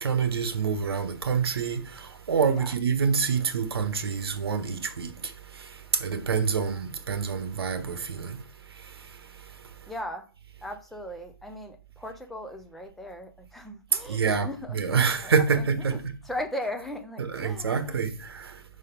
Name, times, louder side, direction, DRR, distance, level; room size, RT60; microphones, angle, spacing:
voice 1, 0.0-8.4 13.9-16.0 17.2-18.6, right 6 dB, 80° right, 1.2 m, -27 dB
voice 2, 9.9-10.2 10.6-14.8 15.1-16.0 16.2-18.0, left 1 dB, ahead, 0.4 m, -38 dB
5.1 x 4.1 x 5.3 m
hypercardioid pair, 165°, 13 cm